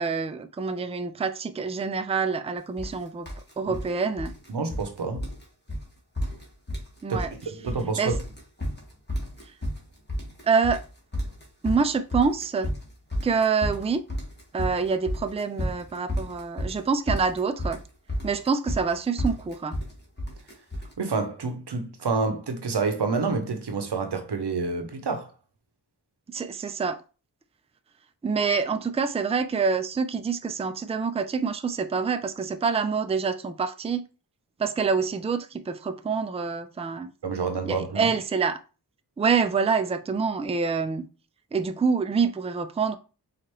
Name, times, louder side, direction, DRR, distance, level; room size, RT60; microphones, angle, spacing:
voice 1, 0.0-3.3 3.6-4.3 7.0-7.3 8.0-8.1 10.4-10.8 11.6-12.7 13.2-14.0 14.5-17.8 18.2-19.8 26.3-27.0 28.2-34.0 34.6-37.1 37.7-38.6 39.2-41.1 41.5-43.0, right 5 dB, 15° right, 0.3 m, -26 dB
sound 1, 2.8-3.0 3.3-3.9 4.2-4.9 5.2-5.4 5.7-5.8 6.2-6.9 7.1-7.8 8.1-20.9, equal, 25° left, 1.4 m, -31 dB
voice 2, 4.5-5.3 7.1-8.2 21.0-25.3 37.2-38.1, right 4 dB, 90° right, 0.7 m, -28 dB
4.5 x 2.5 x 3.0 m
wide cardioid pair, 45°, 39 cm